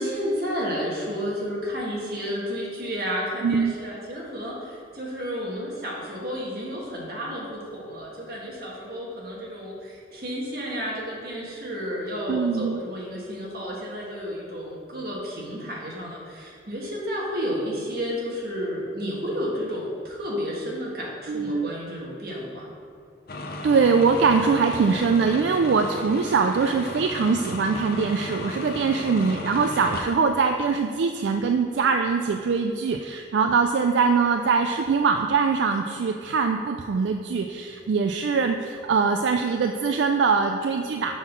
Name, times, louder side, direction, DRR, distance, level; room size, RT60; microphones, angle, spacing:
voice 1, 0.0-22.7, equal, 55° right, -4 dB, 1.5 m, -31 dB
voice 2, 3.4-3.7 12.3-12.8 21.3-21.7 23.6-41.2, right 5 dB, 75° right, 5 dB, 0.3 m, -22 dB
sound 1, 23.3-30.2, left 2 dB, 50° left, 0.5 m, -35 dB
6.2 x 3.8 x 5.9 m, 2.3 s
head